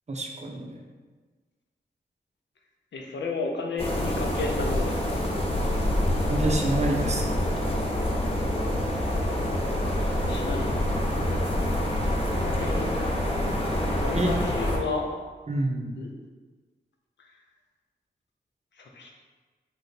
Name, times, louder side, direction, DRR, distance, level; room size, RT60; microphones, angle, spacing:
voice 1, 0.1-0.8 6.3-7.6 14.1-14.3 15.5-16.0, right 1 dB, 35° right, 1 dB, 0.6 m, -28 dB
voice 2, 2.9-5.2 10.3-10.6 12.4-13.0 14.0-15.1 16.0-16.1 17.2-17.3 18.8-19.1, left 3 dB, 80° left, 1 dB, 0.5 m, -33 dB
sound 1, 3.8-14.8, left 1 dB, 30° left, 0.7 m, -26 dB
3.2 x 2.0 x 4.0 m, 1.4 s
cardioid pair, 40°, 19 cm